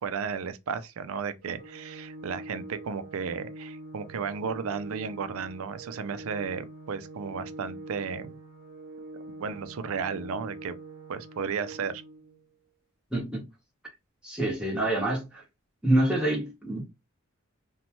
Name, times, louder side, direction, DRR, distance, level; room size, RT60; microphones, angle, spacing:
voice 1, 0.0-8.3 9.4-10.7 11.1-12.0, right 6 dB, 80° right, 0.4 m, -34 dB
Organ, 1.4-12.4, right 2 dB, 55° right, 0.9 m, -44 dB
voice 2, 13.1-13.4 14.2-15.4 15.8-16.8, right 1 dB, 5° right, 0.9 m, -26 dB
2.7 x 2.2 x 2.9 m
head